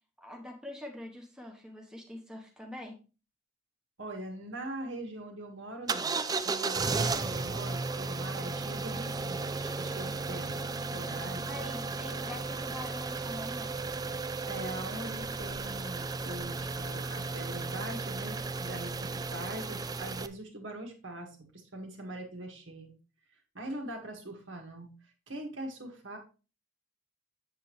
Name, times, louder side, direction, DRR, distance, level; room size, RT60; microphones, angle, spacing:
voice 1, 0.2-3.0 11.5-13.7, left 1 dB, 5° right, 1 dB, 1.0 m, -44 dB
voice 2, 4.0-6.2 6.4-10.7 10.9-11.5 14.5-22.9 23.5-24.9 25.3-26.2, right 1 dB, 65° right, 3 dB, 1.9 m, -42 dB
sound 1, 5.9-20.3, right 3 dB, 20° right, 0.4 m, -34 dB
7.6 x 7.4 x 3.1 m, 0.33 s
head